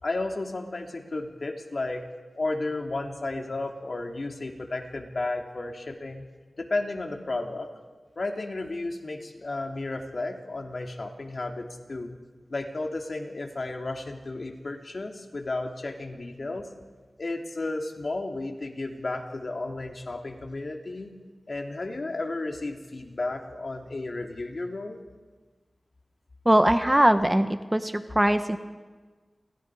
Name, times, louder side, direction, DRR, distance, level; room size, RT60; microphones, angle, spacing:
voice 1, 0.0-2.0 2.4-6.2 6.6-7.7 8.2-12.2 12.5-16.7 17.2-21.1 21.5-25.0, left 2 dB, 55° left, 3 dB, 2.8 m, -33 dB
voice 2, 26.4-28.6, right 1 dB, 10° right, 9 dB, 1.2 m, -21 dB
29.5 x 28.5 x 4.9 m, 1.4 s
wide cardioid pair, 80°, 0 cm